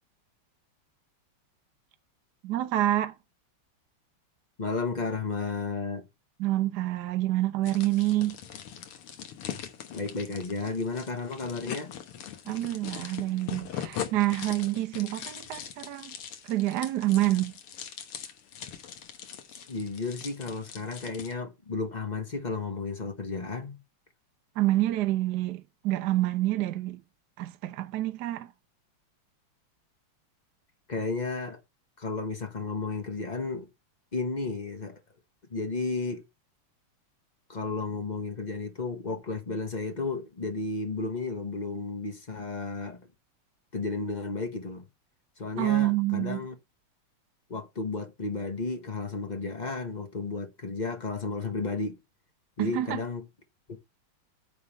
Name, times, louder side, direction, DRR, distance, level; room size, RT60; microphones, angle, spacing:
voice 1, 2.4-3.1 6.4-8.4 12.5-16.1 16.4-17.5 24.6-27.0 27.4-28.5 45.6-46.4 52.6-53.0, right 15 dB, 65° right, 1.1 m, -27 dB
voice 2, 4.6-6.1 9.4-9.6 9.9-11.9 19.7-23.8 30.9-31.6 32.0-33.7 34.1-35.0 35.5-36.2 37.5-43.1 43.7-44.9 45.4-46.5 47.5-52.0 52.6-53.2 53.7-53.8, left 3 dB, 35° left, 0.7 m, -33 dB
sound 1, 7.7-21.3, left 9 dB, 85° left, 2.1 m, -41 dB
9.5 x 3.5 x 7.0 m
omnidirectional pair, 2.4 m